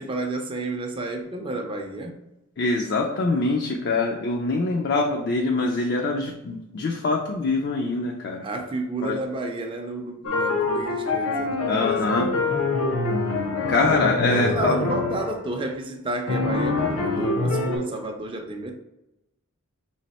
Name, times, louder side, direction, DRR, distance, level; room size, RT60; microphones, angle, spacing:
voice 1, 0.0-2.1 8.4-12.2 14.2-18.7, right 2 dB, 25° right, 0.5 m, -31 dB
voice 2, 2.6-8.5 9.0-9.2 11.7-12.3 13.7-14.9, left 3 dB, 50° left, 0.4 m, -24 dB
sound 1, 10.2-15.4 16.3-17.8, left 3 dB, 75° left, 0.8 m, -25 dB
3.3 x 3.2 x 4.1 m
head